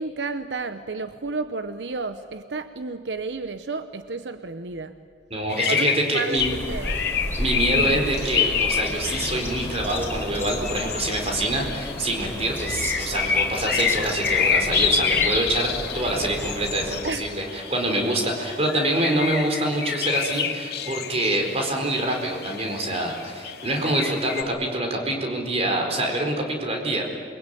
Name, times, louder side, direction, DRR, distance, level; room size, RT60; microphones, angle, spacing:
voice 1, 0.0-5.0 5.7-5.9 6.1-6.4 6.7-7.2 7.7-8.1 17.0-17.4 17.9-18.2, right 3 dB, 80° right, 10 dB, 0.9 m, -32 dB
voice 2, 5.3-6.5 7.4-15.7 15.9-27.0, right 1 dB, 35° right, 2 dB, 4.5 m, -25 dB
sound 1, 5.5-24.4, left 7 dB, 65° left, 2.1 m, -28 dB
sound 2, 6.4-17.0, left 1 dB, 15° left, 4.6 m, -31 dB
28.0 x 22.5 x 9.2 m, 2.1 s
head